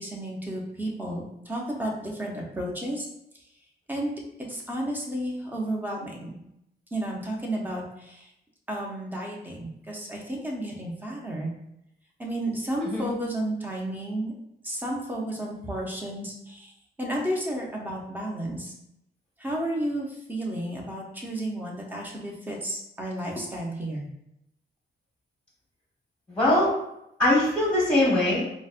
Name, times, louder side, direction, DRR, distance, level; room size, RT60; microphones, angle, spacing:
voice 1, 0.0-3.1 3.9-4.1 4.5-6.4 6.9-8.3 8.7-11.5 12.2-14.3 14.6-16.7 17.0-18.7 19.4-24.0, right 1 dB, 10° right, -2 dB, 0.6 m, -32 dB
voice 2, 12.8-13.1 26.3-26.7 27.2-28.4, left 1 dB, 5° left, -5 dB, 1.0 m, -22 dB
4.0 x 2.1 x 2.4 m, 0.81 s
wide cardioid pair, 150°, 19 cm